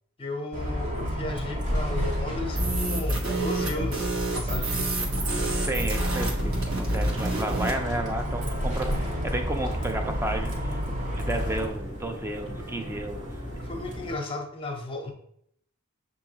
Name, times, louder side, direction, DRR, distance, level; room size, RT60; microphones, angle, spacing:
voice 1, 0.2-4.1 4.3-5.0 13.6-15.1, left 2 dB, 25° left, 3 dB, 0.7 m, -34 dB
Bus, 0.5-11.7, equal, 40° right, 1.2 m, -30 dB
sound 1, 2.5-7.8, right 2 dB, 80° right, 1.2 m, -29 dB
sound 2, 5.0-14.2, equal, 60° right, 1.4 m, -38 dB
voice 2, 5.7-10.8 11.3-13.7, right 1 dB, 10° right, 4 dB, 0.5 m, -32 dB
6.7 x 2.7 x 2.8 m, 0.70 s
head